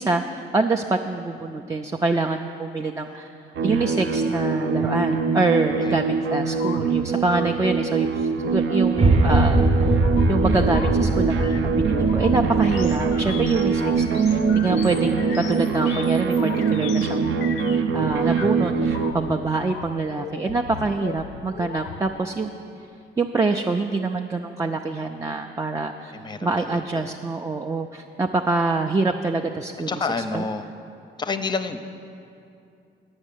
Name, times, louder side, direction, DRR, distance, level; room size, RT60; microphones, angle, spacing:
voice 1, 0.0-3.3 3.6-9.9 10.3-17.3 17.9-22.5 23.2-26.1 26.4-30.5, right 3 dB, 15° right, 3 dB, 0.4 m, -25 dB
sound 1, 3.5-19.1, right 5 dB, 75° right, 0.6 m, -23 dB
sound 2, 6.5-22.4, left 8 dB, 90° left, 0.5 m, -37 dB
sound 3, 9.0-15.2, right 2 dB, 30° right, 0.8 m, -23 dB
voice 2, 26.1-27.1 29.9-30.7 31.2-31.8, left 4 dB, 20° left, 10 dB, 0.6 m, -29 dB
8.7 x 6.3 x 8.4 m, 2.5 s
cardioid pair, 90°, 20 cm